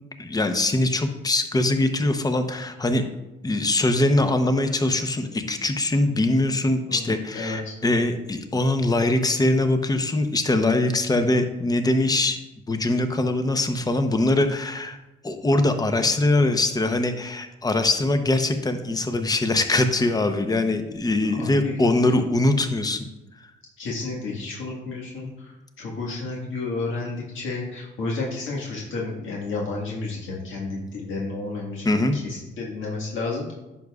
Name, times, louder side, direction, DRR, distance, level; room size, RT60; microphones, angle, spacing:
voice 1, 0.2-3.0 3.4-12.4 12.7-15.0 15.2-23.1 31.8-32.2, left 2 dB, 20° left, 8 dB, 0.8 m, -22 dB
voice 2, 6.9-7.7 21.4-22.1 23.8-31.8 32.1-33.5, left 3 dB, 80° left, -4 dB, 1.7 m, -31 dB
10.0 x 6.5 x 2.4 m, 1.0 s
cardioid pair, 90°, 20 cm